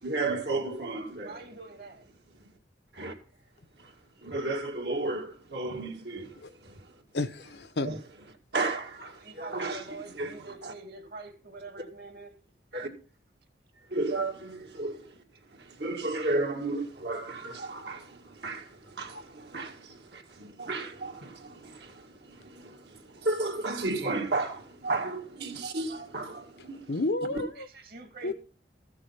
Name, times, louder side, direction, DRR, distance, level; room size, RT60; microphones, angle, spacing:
voice 1, 0.0-1.4 2.9-3.1 3.8-3.9 4.2-7.0 7.8-8.0 8.5-10.7 12.7-12.9 13.9-15.1 15.5-26.9, right 2 dB, 75° right, 2.2 m, -34 dB
voice 2, 1.2-2.1 9.0-12.3 27.6-28.3, right 3 dB, 55° right, 2.0 m, -45 dB
voice 3, 7.1-7.9 26.9-27.7 28.2-28.3, left 2 dB, 70° left, 0.8 m, -31 dB
14.5 x 6.4 x 5.6 m
head